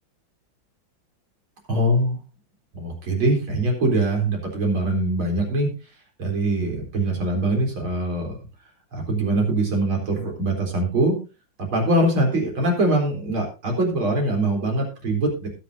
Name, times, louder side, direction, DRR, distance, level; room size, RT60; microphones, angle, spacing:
voice 1, 1.7-2.2 2.7-5.7 6.2-8.4 8.9-11.2 11.6-15.5, right 1 dB, 85° right, 1 dB, 4.7 m, -23 dB
20.0 x 7.8 x 2.7 m, 0.31 s
omnidirectional pair, 2.2 m